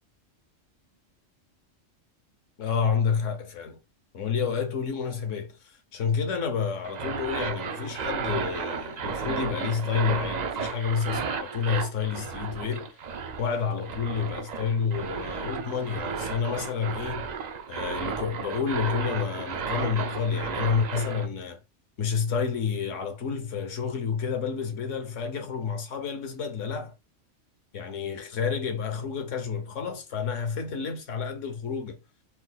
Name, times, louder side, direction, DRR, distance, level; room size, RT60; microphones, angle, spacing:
voice 1, 2.6-3.8 4.1-12.9 13.4-17.3 17.7-21.6 22.0-26.9 27.7-32.0, left 6 dB, 75° left, 1.3 m, -29 dB
sound 1, 6.8-21.3, right 6 dB, 60° right, 0.4 m, -33 dB
4.4 x 3.9 x 2.3 m
omnidirectional pair, 1.3 m